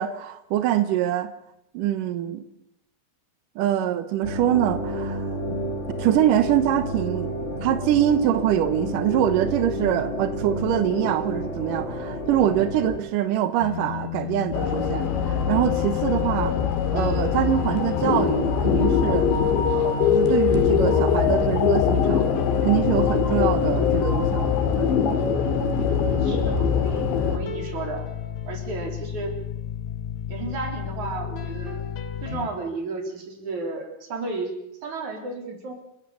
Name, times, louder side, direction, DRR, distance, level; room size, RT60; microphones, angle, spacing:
voice 1, 0.0-1.3 1.7-2.4 3.6-5.3 6.0-7.3 7.6-16.6 16.9-19.3 19.7-22.3 22.6-24.9, right 11 dB, 75° right, 11 dB, 2.0 m, -24 dB
sound 1, 4.2-13.0, equal, 30° left, 1.4 m, -30 dB
sound 2, 13.6-32.5, left 6 dB, 60° left, 1.9 m, -32 dB
sound 3, 14.5-27.4, left 7 dB, 80° left, 4.5 m, -22 dB
voice 2, 23.2-23.5 25.7-28.1 28.4-29.3 30.3-31.8 32.2-35.7, right 3 dB, 45° right, 3 dB, 5.0 m, -33 dB
28.5 x 16.5 x 7.0 m, 0.84 s
omnidirectional pair, 5.1 m